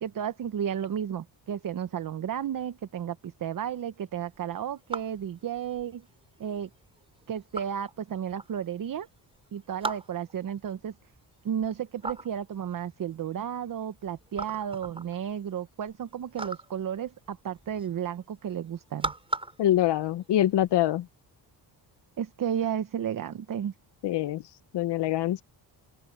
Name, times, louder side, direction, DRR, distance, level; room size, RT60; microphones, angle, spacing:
voice 1, 0.0-6.0 6.4-6.7 7.3-9.1 9.5-10.9 11.4-19.1 22.2-23.7, right 9 dB, 50° right, 1.0 m, -33 dB
sound 1, 4.3-20.7, right 2 dB, 15° right, 7.1 m, -41 dB
voice 2, 19.6-21.1 24.0-24.4 24.7-25.4, left 13 dB, 70° left, 0.9 m, -24 dB
open air
cardioid pair, 135°, 42 cm